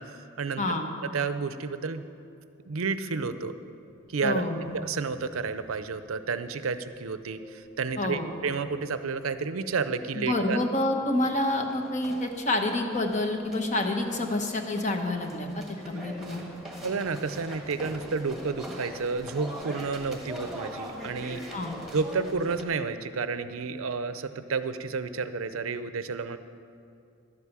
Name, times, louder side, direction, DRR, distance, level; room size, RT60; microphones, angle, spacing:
voice 1, 0.0-0.6 1.0-2.1 2.7-3.5 4.1-4.4 4.7-10.6 16.8-21.4 21.9-26.4, right 4 dB, 90° right, 11 dB, 0.6 m, -31 dB
sound 1, 3.8-4.0 4.4-6.0 6.3-7.0 7.4-9.2 9.6-10.3 10.7-22.6, equal, ahead, 1.6 m, -44 dB
voice 2, 4.2-4.6 8.0-8.3 10.1-15.5 15.9-16.5 21.5-21.8, left 1 dB, 35° left, 4 dB, 1.0 m, -28 dB
12.0 x 8.3 x 7.3 m, 2.5 s
head